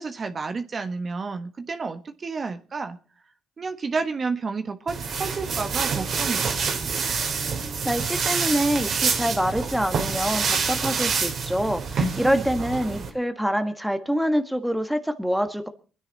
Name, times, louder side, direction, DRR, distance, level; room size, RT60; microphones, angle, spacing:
voice 1, 0.0-3.0 3.6-6.6 12.2-13.1, right 4 dB, 40° right, 7 dB, 1.3 m, -31 dB
sound 1, 4.9-13.1, right 5 dB, 60° right, 2.8 m, -27 dB
voice 2, 7.8-15.7, equal, ahead, 7 dB, 1.4 m, -25 dB
23.5 x 10.0 x 4.0 m, 0.37 s
cardioid pair, 90°, 0 cm